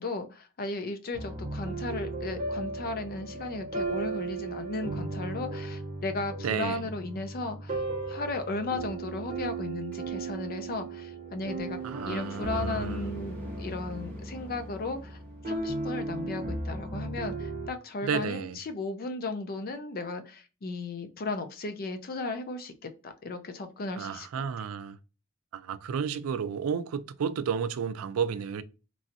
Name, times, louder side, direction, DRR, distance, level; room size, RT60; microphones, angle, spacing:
voice 1, 0.0-11.8 12.1-15.2 15.5-24.3, left 3 dB, 45° left, 0.5 m, -35 dB
sound 1, 1.1-17.7, right 3 dB, 40° right, 0.6 m, -36 dB
voice 2, 6.4-6.9 11.8-13.1 18.0-18.6 24.0-25.0 25.5-28.6, right 7 dB, 85° right, 0.4 m, -32 dB
sound 2, 9.9-15.5, equal, 5° left, 1.0 m, -44 dB
3.1 x 2.6 x 2.6 m
head